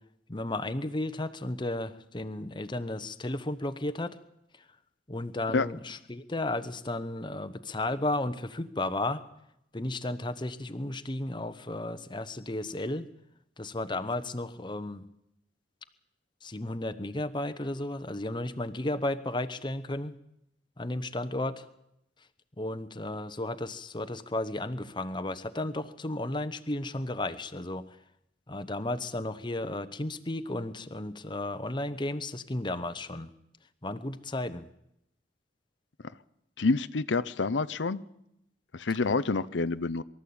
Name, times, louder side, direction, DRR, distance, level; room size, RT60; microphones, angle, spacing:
voice 1, 0.3-4.2 5.1-9.2 9.7-13.1 13.6-15.0 16.4-20.1 20.8-21.7 22.6-27.8 28.5-33.3 33.8-34.7, left 2 dB, 25° left, 11 dB, 1.0 m, -33 dB
voice 2, 36.6-38.0 38.7-40.0, left 3 dB, 85° left, 13 dB, 0.7 m, -27 dB
23.5 x 13.5 x 8.7 m, 0.79 s
head